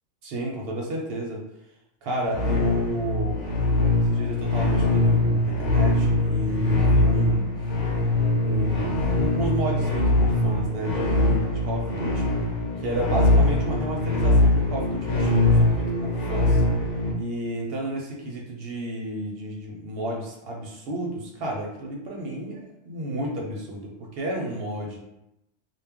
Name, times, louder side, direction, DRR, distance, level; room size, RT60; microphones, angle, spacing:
voice 1, 0.2-1.4 2.0-3.4 3.9-7.5 8.4-12.3 12.8-16.6 17.2-25.0, right 1 dB, 65° right, -1 dB, 0.7 m, -32 dB
sound 1, 2.3-17.1, left 1 dB, 70° left, 1.0 m, -22 dB
2.3 x 2.0 x 3.4 m, 0.87 s
omnidirectional pair, 1.3 m